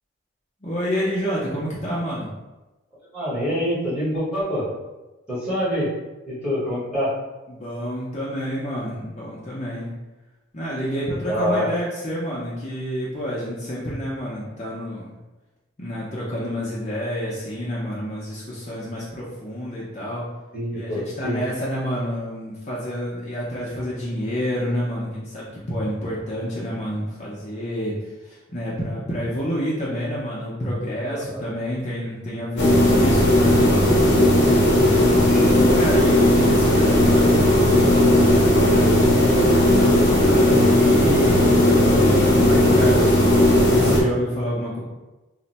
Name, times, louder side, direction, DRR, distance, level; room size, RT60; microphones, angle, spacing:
voice 1, 0.6-2.3 7.5-9.9 10.5-15.1 15.8-20.2 20.7-27.9 28.2-33.5 34.5-43.2 43.7-44.8, equal, 35° left, -7 dB, 0.5 m, -29 dB
voice 2, 3.1-4.7 5.3-5.9 6.3-7.1 11.2-11.7 20.5-21.4 31.1-31.5 35.0-35.5, equal, 5° right, -9 dB, 1.0 m, -26 dB
sound 1, 32.6-44.0, left 1 dB, 65° left, 0.8 m, -16 dB
2.5 x 2.1 x 4.0 m, 1.1 s
head